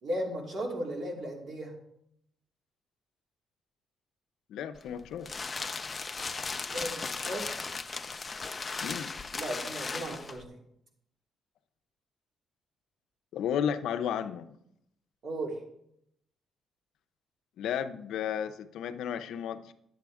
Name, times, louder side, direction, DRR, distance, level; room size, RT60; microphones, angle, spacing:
voice 1, 0.0-1.7 6.7-7.7 9.4-10.6 15.2-15.5, right 1 dB, 65° right, -2 dB, 2.8 m, -36 dB
voice 2, 4.5-5.3 8.8-9.1 13.3-14.5 17.6-19.7, left 8 dB, 80° left, 10 dB, 0.6 m, -33 dB
sound 1, 4.8-10.4, left 4 dB, 30° left, 0.6 m, -37 dB
10.5 x 7.7 x 3.5 m, 0.74 s
cardioid pair, 90°, 0 cm